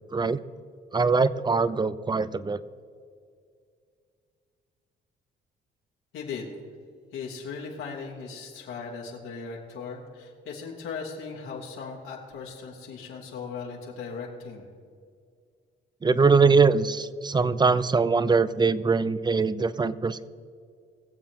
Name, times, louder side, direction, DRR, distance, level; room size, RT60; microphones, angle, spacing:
voice 1, 0.9-2.6 16.0-20.3, right 4 dB, 20° right, 16 dB, 0.5 m, -22 dB
voice 2, 6.1-6.5 7.1-14.7, left 5 dB, 85° left, -2 dB, 2.6 m, -38 dB
22.0 x 7.5 x 3.7 m, 2.2 s
cardioid pair, 90°, 20 cm